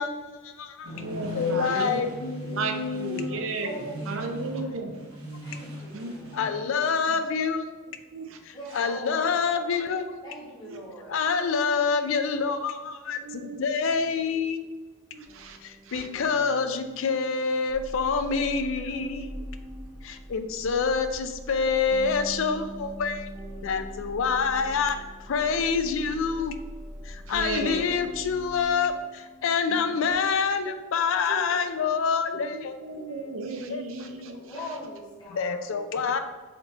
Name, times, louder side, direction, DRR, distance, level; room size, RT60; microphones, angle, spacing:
voice 1, 0.0-1.0 1.3-3.4 6.3-7.7 8.4-10.2 11.1-14.6 15.6-19.3 20.0-23.3 23.6-25.0 25.3-26.5 27.0-32.8 33.5-33.8 35.3-36.2, left 5 dB, 60° left, 8 dB, 0.4 m, -27 dB
sound 1, 0.8-6.5, equal, 80° right, 1.2 m, -39 dB
voice 2, 1.0-2.0 2.5-5.0 5.9-6.1 6.4-6.7 7.0-7.1 8.1-8.4 8.8-8.9 10.7-10.8 13.2-13.6 15.1-15.6 15.8-16.1 27.3-27.9 29.7-29.9 30.6-30.7 31.3-31.4 32.3-34.8, right 3 dB, 65° right, 6 dB, 0.5 m, -35 dB
voice 3, 3.6-4.8 5.4-6.4 8.5-9.4 10.2-11.2 19.6-20.0 23.4-23.7 34.3-35.6, left 1 dB, 20° left, -6 dB, 1.1 m, -42 dB
sound 2, 15.2-30.5, right 1 dB, 35° right, 0.8 m, -47 dB
sound 3, 17.7-28.6, equal, 10° right, 0.9 m, -43 dB
4.3 x 2.8 x 4.0 m, 1.3 s
head